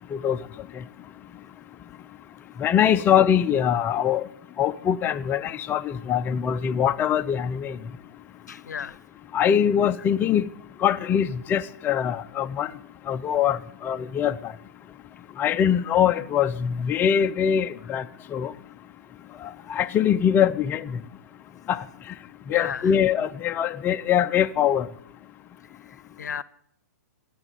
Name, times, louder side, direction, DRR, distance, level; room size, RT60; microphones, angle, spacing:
voice 1, 2.6-4.3 4.6-7.8 9.3-10.5 10.8-12.7 13.1-14.5 15.4-18.0 18.3-18.5 19.4-21.0 21.7-21.8 22.5-24.9, left 9 dB, 20° left, 0.5 m, -23 dB
voice 2, 8.5-9.0 22.5-22.9 25.9-26.4, left 7 dB, 80° left, 0.7 m, -34 dB
14.5 x 9.3 x 8.9 m
hypercardioid pair, 125°, 9 cm